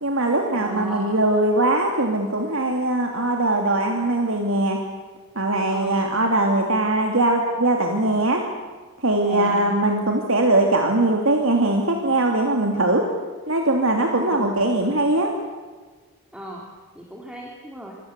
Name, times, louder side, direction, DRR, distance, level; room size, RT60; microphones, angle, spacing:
voice 1, 0.0-4.8 5.4-8.4 9.0-13.0 13.5-15.3, right 2 dB, 70° right, 2 dB, 2.9 m, -21 dB
voice 2, 0.5-1.1 5.7-6.3 9.3-9.7 14.0-14.5 16.3-16.7 17.0-18.0, right 1 dB, 5° right, -2 dB, 3.5 m, -35 dB
27.5 x 24.5 x 8.3 m, 1.4 s
head